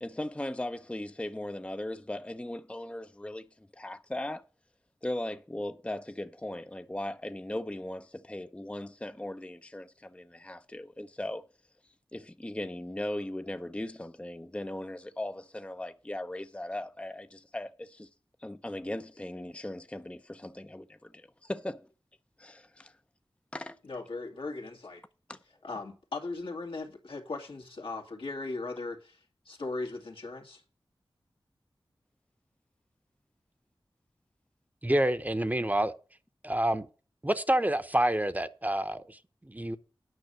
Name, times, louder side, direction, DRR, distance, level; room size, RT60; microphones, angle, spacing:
voice 1, 0.0-3.4 3.8-4.4 5.0-8.0 8.3-9.8 10.5-11.4 12.1-17.3 17.5-17.7 18.4-20.2 20.7-20.8 21.5-21.8 23.5-23.7, left 1 dB, 15° left, 0.6 m, -37 dB
voice 2, 23.8-25.0 25.6-30.6, left 3 dB, 80° left, 2.2 m, -38 dB
voice 3, 34.8-35.9 36.4-36.9 37.2-39.8, right 1 dB, 20° right, 0.9 m, -28 dB
9.6 x 5.6 x 7.6 m
cardioid pair, 40°, 9 cm